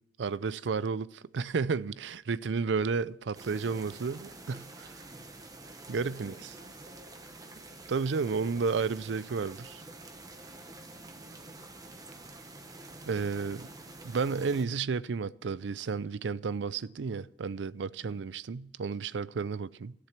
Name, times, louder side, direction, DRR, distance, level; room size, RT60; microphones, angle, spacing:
voice 1, 0.2-5.0 5.9-6.3 7.9-9.8 13.1-13.7 14.0-19.9, right 5 dB, 85° right, 0.5 m, -32 dB
sound 1, 3.3-14.7, right 2 dB, 20° right, 1.1 m, -48 dB
voice 2, 5.9-8.0 18.0-18.2, right 1 dB, 50° right, 1.5 m, -56 dB
13.0 x 10.5 x 5.9 m
head